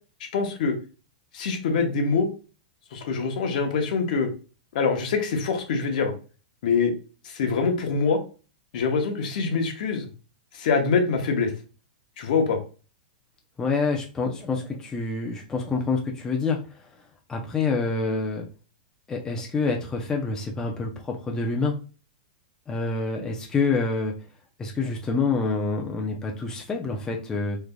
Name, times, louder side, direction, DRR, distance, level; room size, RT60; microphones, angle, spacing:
voice 1, 0.3-0.7 1.3-2.3 2.9-4.3 4.7-6.1 6.6-6.9 7.2-8.2 8.7-10.1 10.5-11.5 12.2-12.6, left 5 dB, 60° left, 4 dB, 0.9 m, -24 dB
voice 2, 13.6-16.6 17.3-18.5 19.1-21.7 22.7-24.1 24.6-27.6, left 4 dB, 15° left, 0 dB, 0.6 m, -27 dB
3.7 x 3.2 x 2.2 m, 0.35 s
hypercardioid pair, 140°, 5 cm